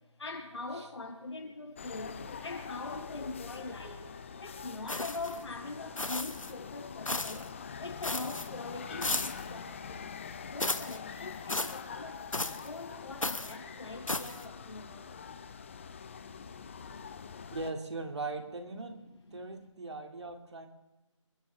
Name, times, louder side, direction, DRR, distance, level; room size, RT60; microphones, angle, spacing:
voice 1, 0.2-4.1 4.4-7.5 7.8-10.1 10.5-15.2 19.5-19.6, left 3 dB, 60° left, -1 dB, 6.5 m, -42 dB
sound 1, 1.8-17.7, left 6 dB, 25° left, 0.8 m, -44 dB
sound 2, 4.9-5.4 6.0-6.5 7.1-7.5 8.0-8.5 9.0-9.5 10.6-11.0 11.5-11.8 12.3-12.7 13.2-13.5 14.1-14.4, left 2 dB, 85° left, 1.3 m, -34 dB
voice 2, 17.5-19.0 19.3-20.7, right 3 dB, 60° right, 4 dB, 2.4 m, -39 dB
29.0 x 14.5 x 3.4 m, 1.1 s
figure-of-eight pair, 160°, 16 cm